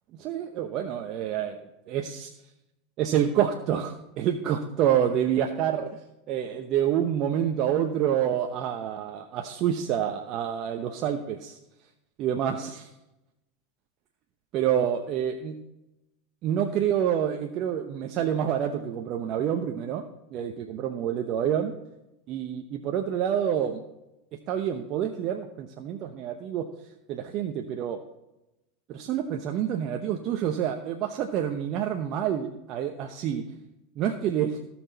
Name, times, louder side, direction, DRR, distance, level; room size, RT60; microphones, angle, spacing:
voice 1, 0.1-1.6 1.9-2.3 3.0-6.0 6.3-11.6 12.2-12.9 14.5-15.5 16.4-20.0 20.3-21.8 22.3-23.8 24.5-26.7 27.1-28.0 28.9-33.4 34.0-34.6, right 9 dB, 50° right, 4 dB, 0.9 m, -27 dB
17.0 x 6.2 x 4.1 m, 0.93 s
hypercardioid pair, 95°, 0 cm